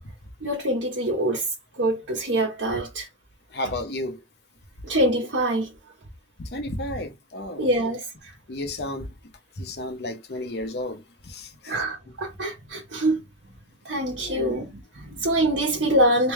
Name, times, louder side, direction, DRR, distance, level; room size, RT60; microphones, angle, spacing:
voice 1, 0.4-1.5 1.8-3.1 4.8-5.7 7.6-8.0 11.7-13.2 13.8-16.3, right 1 dB, 80° right, 1.1 m, -24 dB
voice 2, 3.5-4.2 6.4-7.7 8.5-9.1 9.6-11.8 14.2-14.6, left 1 dB, 60° left, 0.9 m, -33 dB
3.4 x 2.9 x 3.1 m
head